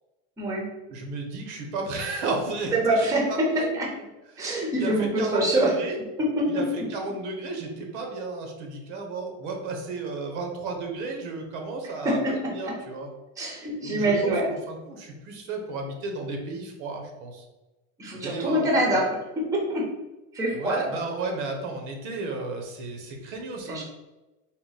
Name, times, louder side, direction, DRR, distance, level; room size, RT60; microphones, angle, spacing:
voice 1, 0.9-3.8 4.3-4.5 4.7-6.0 6.5-13.1 13.8-17.4 18.1-18.6 20.5-23.8, right 3 dB, 85° right, 3 dB, 1.0 m, -33 dB
voice 2, 2.7-3.9 4.4-5.7 6.2-6.6 12.0-12.4 12.6-12.7 13.4-14.5 18.0-19.1 19.4-19.9 20.3-21.0 23.7-23.8, right 1 dB, 10° right, -2 dB, 0.6 m, -25 dB
3.8 x 2.2 x 4.0 m, 1.1 s
cardioid pair, 155°, 34 cm